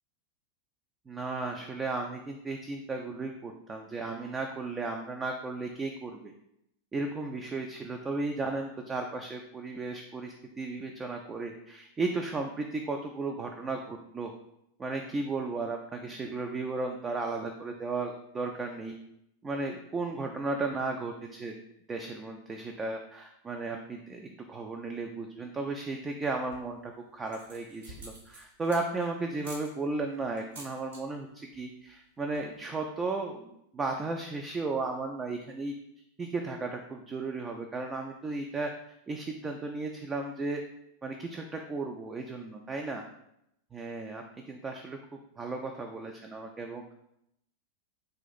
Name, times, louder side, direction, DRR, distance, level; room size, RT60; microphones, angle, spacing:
voice 1, 1.1-6.3 6.9-14.3 14.8-19.0 19.4-21.5 21.9-35.7 36.2-38.7 39.1-40.6 41.0-43.0 43.7-46.9, right 3 dB, 20° right, 3 dB, 0.3 m, -35 dB
sound 1, 26.3-26.8 27.2-29.0 29.4-29.7 30.4-31.0 31.3-31.6 31.9-32.0 32.2-32.6, right 2 dB, 60° right, 1.2 m, -48 dB
3.9 x 2.4 x 4.0 m, 0.79 s
figure-of-eight pair, 90°, 0 cm